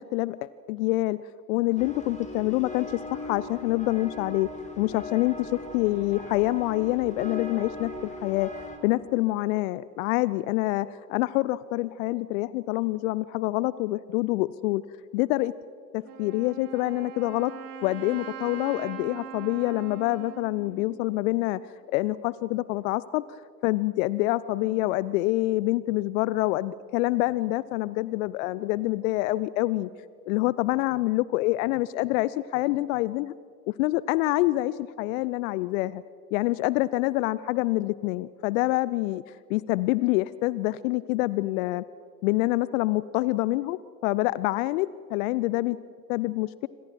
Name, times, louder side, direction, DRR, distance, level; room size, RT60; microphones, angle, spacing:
voice 1, 0.0-1.2 1.5-4.5 4.8-8.5 8.8-14.8 15.1-15.5 15.9-17.5 17.8-21.6 21.9-29.9 30.3-33.3 33.7-36.0 36.3-39.2 39.5-41.8 42.2-45.8 46.1-46.7, left 18 dB, 55° left, 19 dB, 0.6 m, -26 dB
sound 1, 1.8-8.8, left 3 dB, 15° left, 3.6 m, -39 dB
Wind instrument woodwind instrument, 16.0-21.8, right 9 dB, 70° right, 2.1 m, -42 dB
27.5 x 25.5 x 4.7 m, 2.2 s
figure-of-eight pair, 70°, 48 cm